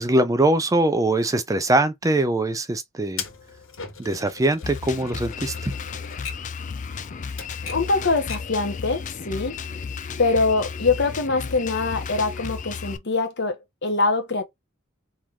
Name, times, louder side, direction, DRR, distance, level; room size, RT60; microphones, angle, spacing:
voice 1, 0.0-3.2 4.0-5.7, right 1 dB, 15° right, 0.4 m, -22 dB
Typewriter, 3.2-8.6, left 6 dB, 75° left, 1.5 m, -39 dB
Drum kit, 4.6-13.0, left 5 dB, 40° left, 0.4 m, -33 dB
voice 2, 7.6-9.6 10.2-14.4, left 3 dB, 60° left, 1.2 m, -23 dB
3.6 x 2.5 x 4.6 m
head